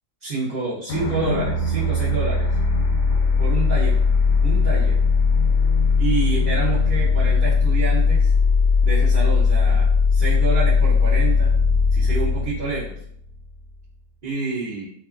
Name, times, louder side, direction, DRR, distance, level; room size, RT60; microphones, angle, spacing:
voice 1, 0.2-2.6 3.4-4.0 4.4-5.0 6.0-8.3 8.8-11.5 11.9-12.9 14.2-14.9, right 3 dB, 50° right, -12 dB, 0.6 m, -28 dB
sound 1, 0.9-13.6, left 4 dB, 80° left, 1.2 m, -19 dB
2.8 x 2.3 x 2.4 m, 0.66 s
omnidirectional pair, 1.8 m